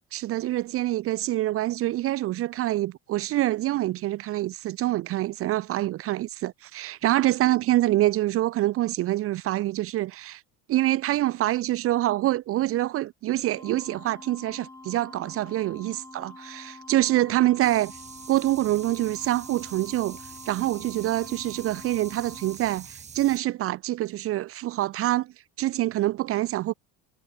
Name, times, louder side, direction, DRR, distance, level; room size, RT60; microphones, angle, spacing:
voice 1, 0.1-10.4 10.7-18.0 18.3-20.2 20.5-26.7, right 15 dB, 45° right, 0.4 m, -26 dB
sound 1, 13.5-22.6, left 2 dB, 10° left, 1.7 m, -46 dB
sound 2, 17.6-23.4, right 6 dB, 20° right, 0.9 m, -45 dB
cardioid pair, 145°, 34 cm